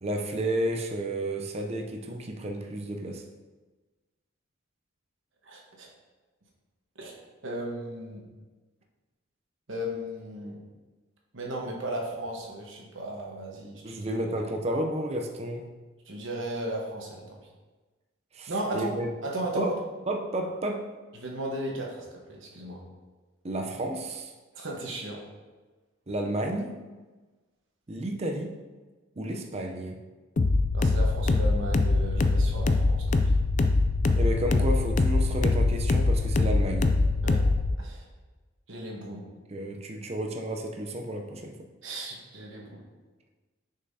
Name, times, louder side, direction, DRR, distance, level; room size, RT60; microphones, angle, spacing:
voice 1, 0.0-3.2 13.8-15.7 18.3-19.1 19.5-19.7 20.1-20.9 23.4-24.3 26.1-26.8 27.9-28.6 29.2-30.0 34.2-37.0 39.5-41.6, right 1 dB, 30° right, 2 dB, 0.5 m, -31 dB
voice 2, 5.4-5.9 7.0-7.1 7.4-8.2 9.7-10.6 11.3-14.0 16.1-17.4 18.5-18.9 19.2-19.8 21.1-22.8 24.5-25.2 30.7-33.2 37.2-37.4 37.8-38.0 38.7-39.2 41.8-42.8, right 1 dB, 65° right, -1 dB, 1.2 m, -35 dB
sound 1, 30.4-37.7, left 3 dB, 35° left, 0.3 m, -23 dB
6.6 x 5.5 x 2.7 m, 1.2 s
head